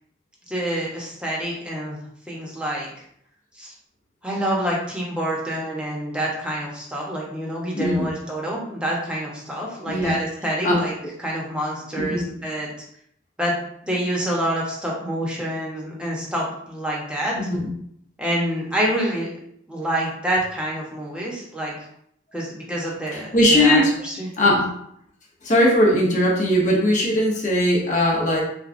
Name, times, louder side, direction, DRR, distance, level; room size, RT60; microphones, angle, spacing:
voice 1, 0.5-2.0 2.3-2.9 3.6-3.7 4.2-10.9 11.2-12.7 13.4-13.6 13.8-17.4 18.2-19.3 19.7-21.7 22.3-24.3, right 1 dB, 5° right, -4 dB, 0.9 m, -27 dB
voice 2, 7.7-8.1 9.9-10.2 10.6-10.8 12.0-12.2 17.3-17.7 23.1-23.9 24.4-24.7 25.4-28.4, left 1 dB, 40° left, -3 dB, 0.9 m, -19 dB
6.2 x 2.3 x 2.6 m, 0.68 s
head